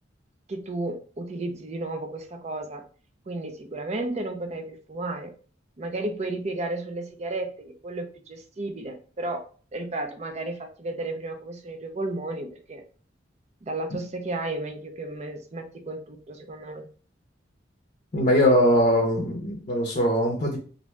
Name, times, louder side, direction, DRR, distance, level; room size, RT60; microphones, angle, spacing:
voice 1, 0.5-2.8 3.3-5.3 5.8-9.4 9.7-12.8 13.6-16.9, right 2 dB, 35° right, 6 dB, 0.5 m, -33 dB
voice 2, 18.1-20.6, equal, 40° left, -1 dB, 0.6 m, -21 dB
2.6 x 2.2 x 3.0 m, 0.40 s
head